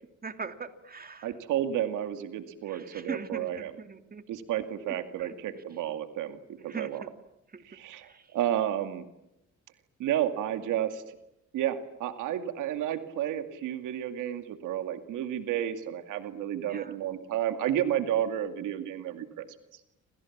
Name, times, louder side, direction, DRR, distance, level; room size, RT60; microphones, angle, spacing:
voice 1, 0.2-1.3 2.7-4.2 5.2-5.3 6.6-6.9 7.5-7.6 8.0-8.2 16.7-16.9, right 4 dB, 30° right, 8 dB, 2.6 m, -40 dB
voice 2, 1.2-3.7 4.3-6.4 6.6-7.0 7.6-9.1 10.0-11.0 11.5-19.5, right 11 dB, 90° right, 8 dB, 2.3 m, -31 dB
30.0 x 27.0 x 7.3 m, 0.86 s
cardioid pair, 90°, 30 cm